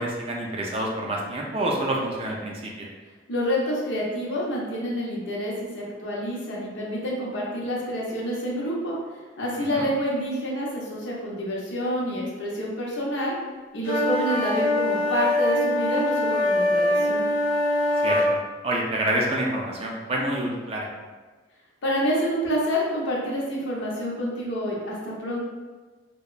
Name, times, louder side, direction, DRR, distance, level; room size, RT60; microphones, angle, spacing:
voice 1, 0.0-2.9 9.7-9.8 18.0-20.9, right 1 dB, 30° right, -1 dB, 0.3 m, -27 dB
voice 2, 3.3-9.0 9.4-13.3 13.7-17.2 21.8-25.4, equal, 70° left, -4 dB, 0.6 m, -28 dB
sound 1, 13.8-18.3, left 1 dB, 50° right, 0.9 m, -23 dB
2.8 x 2.1 x 2.3 m, 1.3 s
head